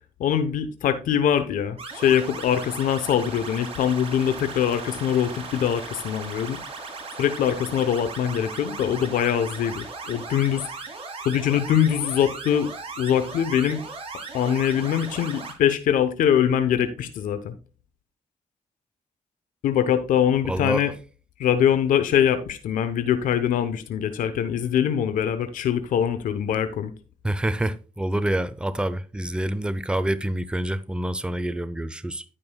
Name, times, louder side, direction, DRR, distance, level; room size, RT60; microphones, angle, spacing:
voice 1, 0.2-6.6 7.2-10.7 11.2-12.7 13.0-13.8 14.3-17.6 19.6-20.9 21.4-26.9, left 9 dB, 85° left, 0.8 m, -23 dB
sound 1, 1.8-15.5, right 4 dB, 45° right, 2.8 m, -37 dB
voice 2, 20.5-20.8 27.2-32.2, right 1 dB, 5° right, 0.7 m, -27 dB
15.0 x 5.4 x 2.3 m
cardioid pair, 75°, 14 cm